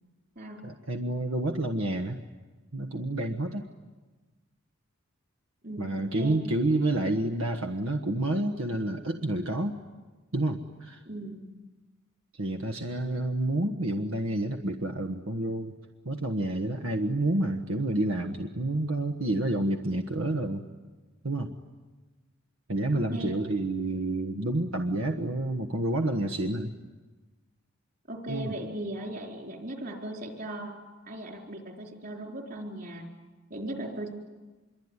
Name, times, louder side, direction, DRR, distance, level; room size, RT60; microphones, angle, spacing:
voice 1, 0.6-2.2 2.7-3.6 5.8-9.8 10.3-11.0 12.4-15.7 16.0-20.6 21.2-21.5 22.7-26.7 28.3-28.6, right 1 dB, 85° right, 5 dB, 1.4 m, -29 dB
voice 2, 5.6-6.4 11.1-11.6 22.9-23.4 28.1-30.7 31.1-33.1 33.5-34.1, right 1 dB, 45° right, 2 dB, 4.4 m, -38 dB
26.0 x 23.0 x 9.8 m, 1.2 s
head